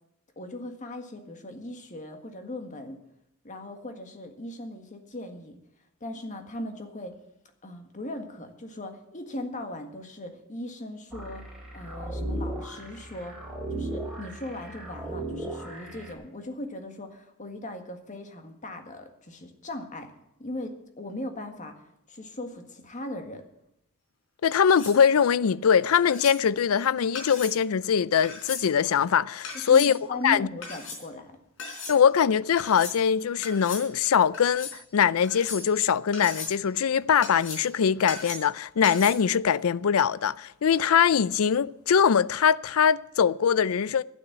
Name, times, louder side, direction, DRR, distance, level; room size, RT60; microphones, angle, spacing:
voice 1, 0.4-3.0 3.4-5.6 6.0-7.2 7.6-11.5 11.7-13.4 13.7-20.1 20.4-21.8 22.1-23.4 29.5-31.3, left 1 dB, 35° left, 1.7 m, -38 dB
sound 1, 11.1-16.1, right 1 dB, 5° right, 3.5 m, -36 dB
voice 2, 24.4-29.9 30.2-30.5 31.9-44.0, left 7 dB, 90° left, 0.4 m, -22 dB
sound 2, 24.5-25.0 25.9-26.4 27.2-27.6 28.2-28.6 29.4-29.9 30.6-31.0 31.6-32.0 32.6-33.0 33.4-33.9 34.3-34.8 35.2-35.8 36.1-36.6 37.2-37.7 38.1-38.5 38.8-39.1, left 4 dB, 65° left, 4.5 m, -37 dB
12.0 x 9.4 x 8.0 m
head